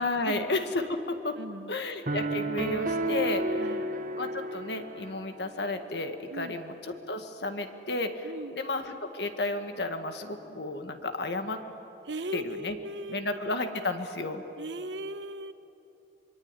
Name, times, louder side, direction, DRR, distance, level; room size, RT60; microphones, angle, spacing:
voice 1, 0.0-1.4 1.7-3.6 4.2-6.7 7.1-11.6 12.3-12.8 13.1-14.4, left 2 dB, 65° left, 7 dB, 1.8 m, -32 dB
voice 2, 1.4-1.8 3.6-3.9 6.3-6.5 8.2-8.6 12.0-13.9 14.6-15.5, right 1 dB, 80° right, 10 dB, 1.1 m, -38 dB
sound 1, 2.1-5.3, right 1 dB, 50° right, 1.5 m, -31 dB
25.5 x 22.5 x 9.9 m, 3.0 s
head